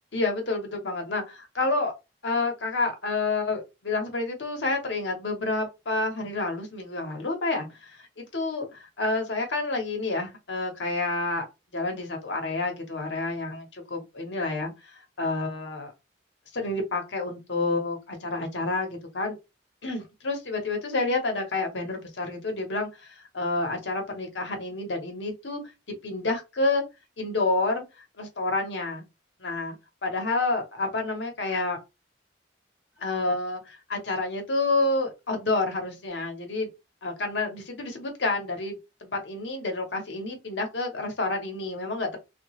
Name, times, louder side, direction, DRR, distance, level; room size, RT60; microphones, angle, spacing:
voice 1, 0.1-1.9 2.2-11.4 11.7-15.9 16.5-19.3 19.8-25.6 26.0-26.8 27.2-29.0 29.4-29.8 30.0-31.8 33.0-36.7 37.0-42.2, left 2 dB, 80° left, 0.9 m, -29 dB
2.7 x 2.4 x 2.9 m
head